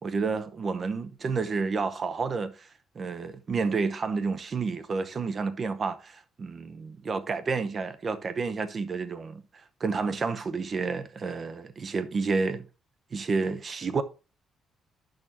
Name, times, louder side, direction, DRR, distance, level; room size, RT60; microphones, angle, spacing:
voice 1, 0.0-2.7 2.9-12.7 13.1-14.0, right 4 dB, 45° right, 0.7 m, -30 dB
10.5 x 6.4 x 2.8 m
cardioid pair, 90°, 0 cm